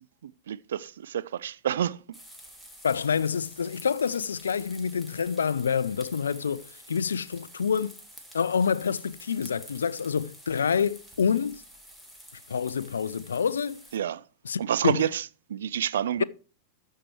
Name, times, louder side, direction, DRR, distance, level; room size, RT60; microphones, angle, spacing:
voice 1, 0.2-2.0 13.9-14.2 14.6-15.2 15.5-16.2, right 9 dB, 65° right, 0.4 m, -28 dB
sound 1, 2.1-14.0, equal, 5° right, 2.1 m, -49 dB
voice 2, 2.8-8.0 8.3-11.6 12.5-13.8 14.4-15.0, left 6 dB, 70° left, 0.4 m, -27 dB
13.5 x 4.7 x 4.5 m
figure-of-eight pair, 90°, 0 cm